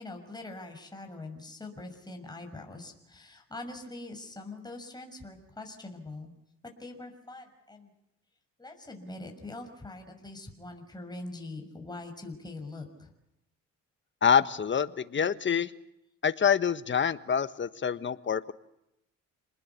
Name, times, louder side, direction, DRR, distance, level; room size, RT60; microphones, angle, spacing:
voice 1, 0.0-6.3 6.6-7.9 8.6-13.1, left 2 dB, 15° left, 3 dB, 6.3 m, -43 dB
voice 2, 14.2-15.7 16.2-18.5, left 7 dB, 40° left, 13 dB, 1.5 m, -26 dB
28.5 x 20.5 x 8.3 m, 0.84 s
cardioid pair, 90°, 30 cm